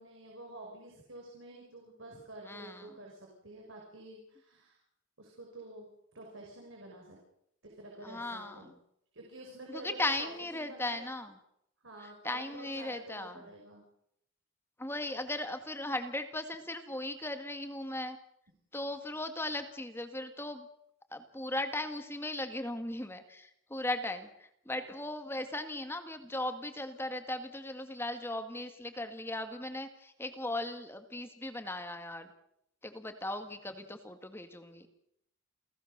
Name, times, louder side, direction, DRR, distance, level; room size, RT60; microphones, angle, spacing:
voice 1, 0.0-4.8 5.2-5.9 6.1-7.2 7.6-8.7 9.1-11.2 11.8-13.9, right 1 dB, 70° right, -1 dB, 5.8 m, -49 dB
voice 2, 2.5-2.9 8.0-8.7 9.7-11.3 12.0-13.4 14.8-18.2 18.7-20.7 21.1-32.3 32.8-34.9, left 1 dB, 10° left, 8 dB, 1.8 m, -37 dB
29.0 x 17.0 x 6.7 m, 0.76 s
head